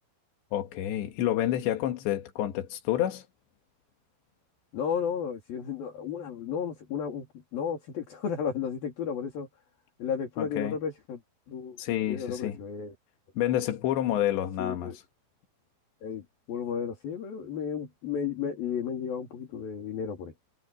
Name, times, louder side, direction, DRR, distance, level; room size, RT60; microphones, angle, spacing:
voice 1, 0.5-3.3 10.4-10.8 11.8-12.6 13.4-14.9, left 12 dB, 85° left, 4.1 m, -29 dB
voice 2, 4.7-7.3 7.5-9.5 10.0-11.2 11.5-11.8 12.1-12.9 14.6-15.0 16.0-20.3, left 7 dB, 60° left, 4.8 m, -33 dB
omnidirectional pair, 4.9 m